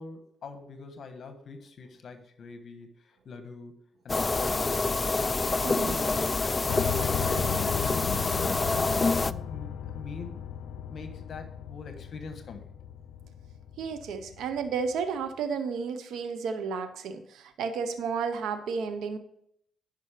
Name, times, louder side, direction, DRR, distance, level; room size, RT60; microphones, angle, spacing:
voice 1, 0.0-3.7 4.0-5.1 5.5-6.7 7.3-12.7, left 4 dB, 55° left, 7 dB, 1.3 m, -43 dB
sound 1, 4.1-9.3, left 3 dB, 25° left, 0.3 m, -27 dB
voice 2, 5.6-6.0 7.3-7.4 13.8-19.2, right 5 dB, 80° right, 9 dB, 0.8 m, -32 dB
Piano, 6.7-14.7, left 9 dB, 90° left, 0.5 m, -36 dB
10.5 x 5.4 x 5.1 m, 0.70 s
cardioid pair, 85°, 0 cm